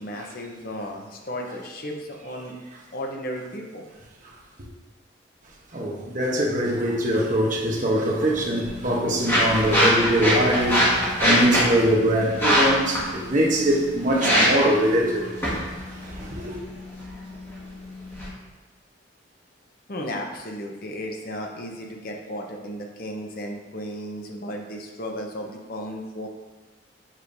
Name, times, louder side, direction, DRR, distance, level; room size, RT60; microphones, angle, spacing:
voice 1, 0.0-2.6 2.9-3.9 19.9-26.3, equal, 50° left, 0.8 m, -35 dB
voice 2, 5.7-15.3 16.2-16.6, right 1 dB, 45° right, 1.0 m, -22 dB
sound 1, 8.3-18.3, equal, 15° left, 1.6 m, -24 dB
7.3 x 5.0 x 2.6 m
head